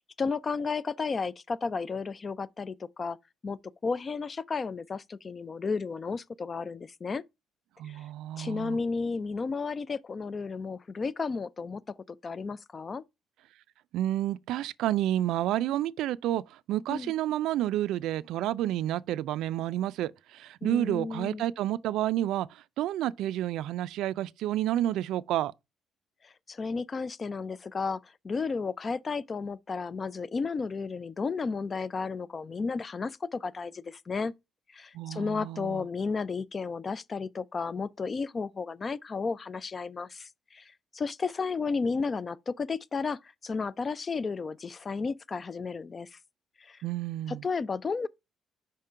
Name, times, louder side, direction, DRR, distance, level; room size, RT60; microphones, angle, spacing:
voice 1, 0.2-3.2 3.4-7.2 7.9-8.0 8.4-13.0 16.9-17.1 20.6-21.4 26.2-34.3 34.7-46.2 46.6-46.8 47.3-48.1, left 4 dB, 30° left, 0.3 m, -33 dB
voice 2, 7.8-8.8 13.9-22.5 22.8-25.5 34.9-35.8 46.8-47.4, right 13 dB, 85° right, 0.3 m, -30 dB
5.2 x 3.7 x 5.5 m
cardioid pair, 145°, 0 cm